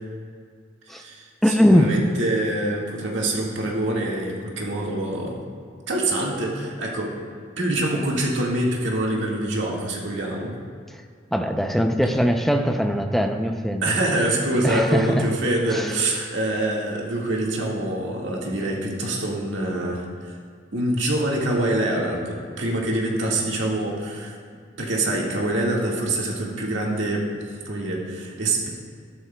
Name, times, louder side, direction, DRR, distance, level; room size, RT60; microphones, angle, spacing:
voice 1, 0.9-5.4 5.9-7.1 7.6-10.5 13.8-20.4 20.7-24.4 24.8-28.7, right 1 dB, 80° right, -3 dB, 1.8 m, -25 dB
voice 2, 1.4-2.0 11.3-14.0 14.6-15.3 15.7-15.9, equal, ahead, 5 dB, 0.5 m, -21 dB
13.5 x 11.0 x 2.3 m, 2.2 s
head